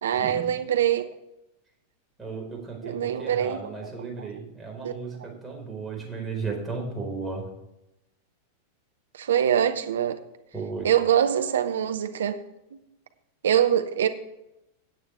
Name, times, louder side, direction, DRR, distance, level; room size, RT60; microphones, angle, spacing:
voice 1, 0.0-1.0 2.8-3.6 4.2-4.3 4.8-4.9 9.1-10.2 10.8-12.4 13.4-14.1, right 9 dB, 65° right, 0.8 m, -23 dB
voice 2, 2.2-7.4 10.5-10.9, right 4 dB, 10° right, 4.6 m, -35 dB
17.0 x 8.6 x 3.5 m
figure-of-eight pair, 90°, 0 cm